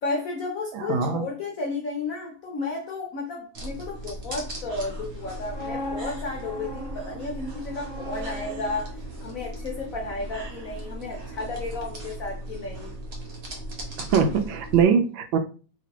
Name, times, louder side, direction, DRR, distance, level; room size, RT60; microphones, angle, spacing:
voice 1, 0.0-8.9 9.2-12.9, left 3 dB, 70° left, 0.8 m, -33 dB
voice 2, 0.7-1.3 14.1-15.4, right 6 dB, 85° right, 1.3 m, -22 dB
sound 1, 3.5-14.8, right 1 dB, 50° right, 0.7 m, -38 dB
sound 2, 5.2-11.1 11.4-11.7, equal, 35° left, 0.4 m, -40 dB
3.0 x 2.9 x 2.8 m
omnidirectional pair, 2.1 m